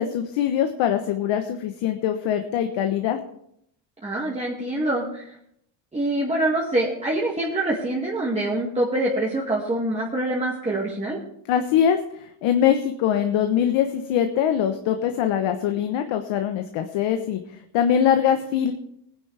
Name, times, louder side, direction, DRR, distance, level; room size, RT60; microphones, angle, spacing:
voice 1, 0.0-3.2 11.5-17.4 17.7-18.7, left 9 dB, 65° left, 6 dB, 1.2 m, -22 dB
voice 2, 4.0-5.2 5.9-11.2, right 1 dB, 15° right, -5 dB, 2.1 m, -25 dB
19.0 x 10.0 x 3.4 m, 0.73 s
cardioid pair, 115°, 48 cm